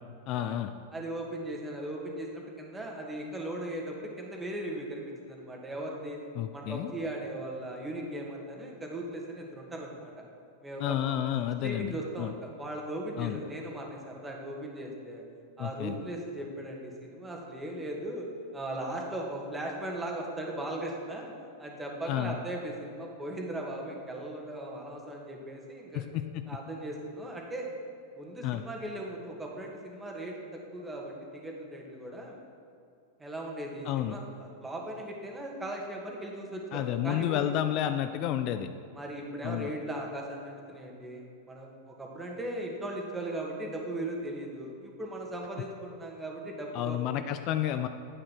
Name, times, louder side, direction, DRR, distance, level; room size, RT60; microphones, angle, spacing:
voice 1, 0.3-0.7 6.4-6.9 10.8-12.3 13.2-13.4 15.6-16.0 22.1-22.4 25.9-26.5 28.4-28.6 33.9-34.2 36.7-38.7 39.4-39.7 46.7-47.9, left 11 dB, 40° left, 9 dB, 0.5 m, -31 dB
voice 2, 0.9-6.2 6.5-10.1 10.6-11.0 11.6-15.2 15.6-18.3 18.5-21.3 21.6-26.0 26.5-27.7 28.2-32.4 33.2-37.4 38.9-47.0, right 1 dB, 10° right, 0 dB, 2.1 m, -38 dB
11.0 x 9.0 x 6.0 m, 2.4 s
figure-of-eight pair, 90°, 0 cm